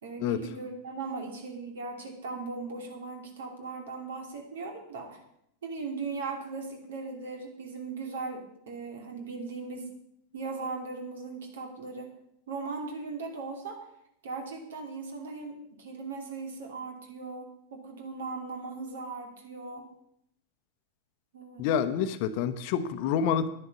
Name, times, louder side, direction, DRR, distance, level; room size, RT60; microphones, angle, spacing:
voice 1, 0.0-5.2 5.6-9.9 10.3-12.1 12.5-13.9 14.2-19.9 21.3-21.7, right 4 dB, 60° right, 3 dB, 2.7 m, -38 dB
voice 2, 21.6-23.5, left 8 dB, 45° left, 12 dB, 0.9 m, -27 dB
11.0 x 10.0 x 6.0 m, 0.76 s
figure-of-eight pair, 90°, 0 cm